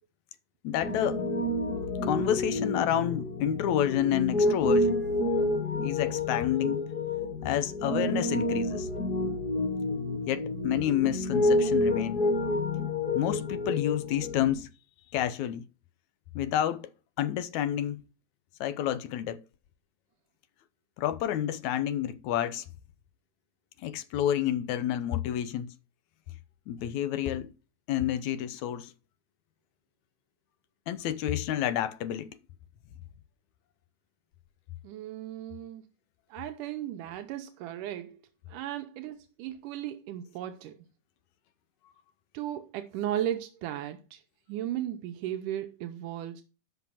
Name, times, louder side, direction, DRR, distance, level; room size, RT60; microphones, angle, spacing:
voice 1, 0.6-1.2 2.0-5.1 5.8-6.8 7.4-8.9 10.3-12.2 13.1-14.7 15.1-15.6 16.4-16.9 17.2-18.0 18.6-19.4 21.0-22.6 23.8-25.7 26.7-27.5 27.9-28.9 30.9-32.3, left 11 dB, 75° left, 2.0 m, -29 dB
Piano, 0.8-14.5, left 1 dB, 35° left, 2.0 m, -29 dB
voice 2, 34.8-35.8 36.3-38.2 38.5-40.8 42.3-44.2 44.5-46.4, right 11 dB, 85° right, 2.4 m, -36 dB
10.5 x 6.0 x 5.6 m
omnidirectional pair, 3.7 m